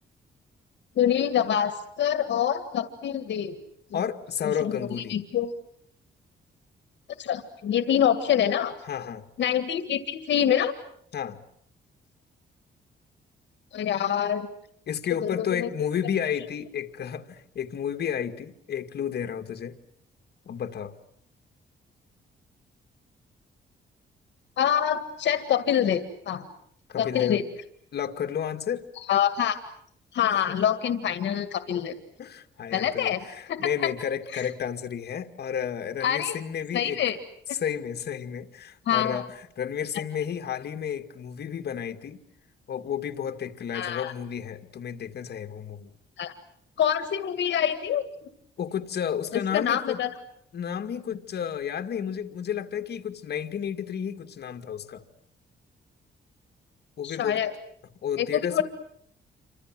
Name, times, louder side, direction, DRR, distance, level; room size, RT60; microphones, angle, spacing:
voice 1, 1.0-3.6 4.4-5.5 7.2-8.7 9.4-10.7 13.7-14.5 15.2-15.7 24.6-26.5 27.0-27.4 29.1-29.6 30.1-31.9 32.7-33.2 33.5-33.9 34.3-34.5 36.0-36.4 36.7-37.2 38.9-39.2 43.7-44.1 46.2-46.3 46.8-48.0 49.3-50.1 57.0-57.5 58.2-58.6, left 9 dB, 75° left, 10 dB, 1.9 m, -25 dB
voice 2, 3.9-5.2 8.8-9.3 11.1-11.4 14.9-19.8 20.5-21.0 26.9-27.4 27.9-28.9 30.3-30.4 32.2-37.0 37.5-39.3 39.6-42.2 42.7-45.9 48.6-50.0 50.5-55.0 57.0-57.4 58.0-58.6, left 8 dB, 60° left, 6 dB, 2.2 m, -31 dB
28.5 x 26.0 x 7.7 m, 0.70 s
cardioid pair, 130°, 19 cm